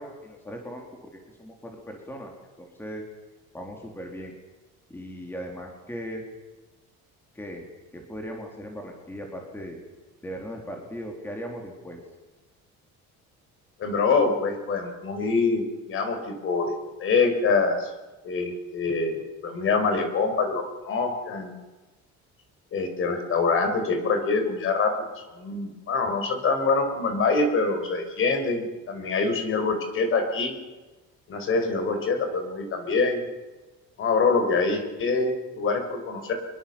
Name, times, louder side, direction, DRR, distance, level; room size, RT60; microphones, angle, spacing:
voice 1, 0.0-3.0 3.5-4.3 4.9-6.2 7.3-7.6 7.9-9.8 10.2-12.0, equal, 5° left, 1 dB, 3.9 m, -38 dB
voice 2, 13.8-16.7 17.0-17.9 18.2-21.6 22.7-24.9 25.4-30.5 31.3-33.2 34.0-36.3, left 4 dB, 45° left, 6 dB, 5.4 m, -25 dB
25.0 x 22.5 x 7.2 m, 1.2 s
cardioid pair, 160°, 30 cm